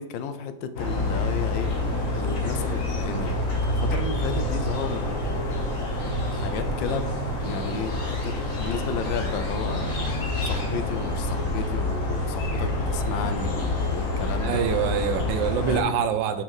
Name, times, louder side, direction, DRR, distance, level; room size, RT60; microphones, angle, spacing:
voice 1, 0.0-1.7 2.1-3.3 3.7-5.2 6.3-9.9 10.4-14.6 15.7-15.9, left 6 dB, 75° left, 10 dB, 1.3 m, -33 dB
sound 1, 0.8-15.8, left 1 dB, 45° left, 1.6 m, -27 dB
voice 2, 14.4-16.4, right 8 dB, 80° right, 10 dB, 1.3 m, -25 dB
5.5 x 5.3 x 4.8 m, 0.92 s
omnidirectional pair, 2.1 m